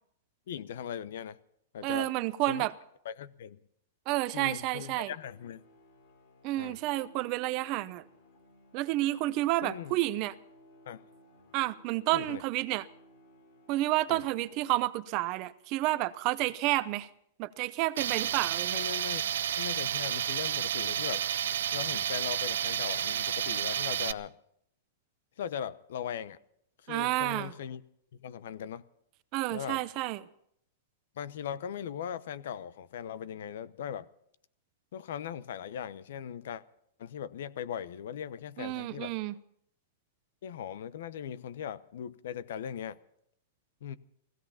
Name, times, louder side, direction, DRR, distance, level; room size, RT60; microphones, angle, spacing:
voice 1, 0.5-1.4 1.7-2.1 2.5-2.7 3.0-3.6 4.3-5.6 6.6-6.8 9.6-10.0 10.9-11.0 12.1-12.4 14.1-14.2 18.7-21.2 21.7-24.3 25.4-26.4 26.8-27.8 28.2-28.8 29.5-29.8 31.2-34.1 34.9-36.6 37.0-39.1 40.4-43.0 43.8-44.0, left 9 dB, 70° left, 0.8 m, -39 dB
voice 2, 1.8-2.7 4.1-5.1 6.4-8.0 8.7-10.3 11.5-12.8 13.7-17.1 17.4-18.8 26.9-27.5 29.3-30.2 38.6-39.3, right 17 dB, 40° right, 0.7 m, -30 dB
sound 1, 4.5-15.3, left 1 dB, 55° left, 3.7 m, -60 dB
Tools, 18.0-24.1, right 10 dB, 80° right, 0.6 m, -31 dB
16.0 x 16.0 x 5.7 m
hypercardioid pair, 145°, 0 cm